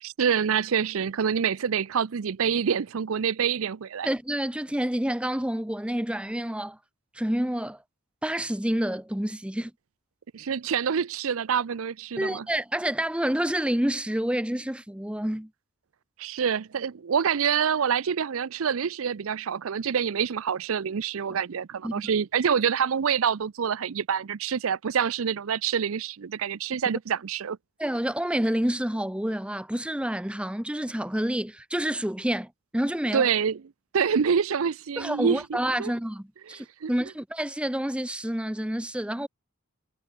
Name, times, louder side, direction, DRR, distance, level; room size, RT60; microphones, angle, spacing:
voice 1, 0.0-4.1 10.3-12.4 16.2-27.6 33.1-33.6 33.9-35.4 35.8-35.9 36.5-36.9, right 7 dB, 70° right, 0.5 m, -26 dB
voice 2, 4.0-6.8 7.1-7.8 8.2-9.7 12.2-15.5 21.8-21.9 27.8-33.3 35.0-39.3, right 1 dB, 5° right, 0.6 m, -28 dB
head